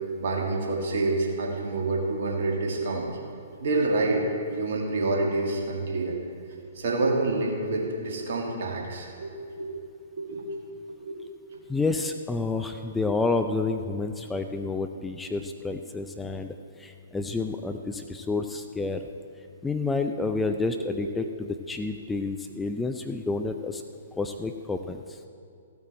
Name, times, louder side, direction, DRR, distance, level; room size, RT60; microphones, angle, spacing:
voice 1, 0.2-3.2 3.6-4.2 4.5-6.2 6.8-9.8 10.2-10.5 10.9-11.3 21.0-21.1, right 2 dB, 55° right, 0 dB, 2.1 m, -28 dB
voice 2, 11.7-16.5 16.8-19.0 19.6-23.8 24.2-25.2, left 3 dB, 10° left, 6 dB, 0.5 m, -29 dB
14.5 x 8.7 x 4.3 m, 2.5 s
figure-of-eight pair, 120°, 0 cm